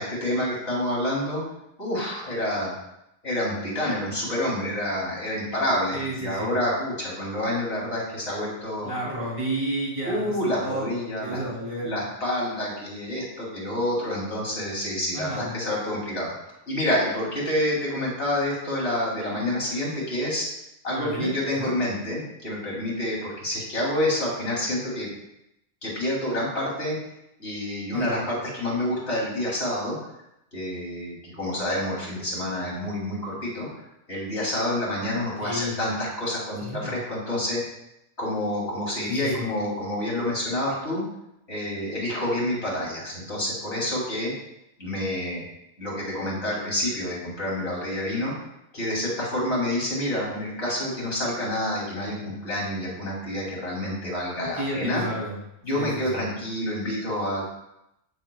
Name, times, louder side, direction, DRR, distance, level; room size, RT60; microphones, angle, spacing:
voice 1, 0.0-1.4 1.8-2.7 3.2-8.9 10.1-11.4 11.8-16.3 16.7-20.5 20.8-25.1 25.8-27.0 27.4-30.0 30.5-33.7 34.1-37.6 38.2-41.0 41.5-44.3 44.8-45.4 45.8-48.3 48.7-55.0 55.6-57.5, left 1 dB, 80° left, -4 dB, 3.2 m, -28 dB
voice 2, 5.9-6.5 8.8-11.9 15.1-15.5 20.9-21.7 27.9-28.2 35.4-35.7 36.6-37.0 39.1-39.4 54.4-55.3 55.7-56.2, right 1 dB, 30° right, -6 dB, 3.1 m, -31 dB
8.7 x 8.6 x 2.3 m, 0.84 s
omnidirectional pair, 1.1 m